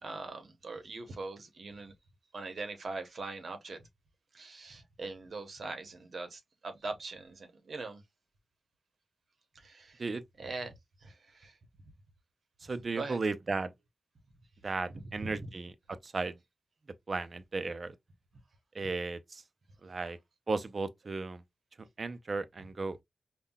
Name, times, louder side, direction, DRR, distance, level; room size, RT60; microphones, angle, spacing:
voice 1, 0.0-1.9 2.3-3.8 4.3-8.0 9.5-10.0 10.4-11.6 12.9-13.2 14.9-15.5 19.9-20.0, right 3 dB, 55° right, 0.8 m, -42 dB
voice 2, 12.6-13.7 14.6-16.4 17.1-17.9 18.7-19.4 19.8-20.2 20.5-21.4 21.8-23.0, right 3 dB, 40° right, 0.4 m, -35 dB
5.5 x 2.2 x 2.2 m
wide cardioid pair, 140°, 0 cm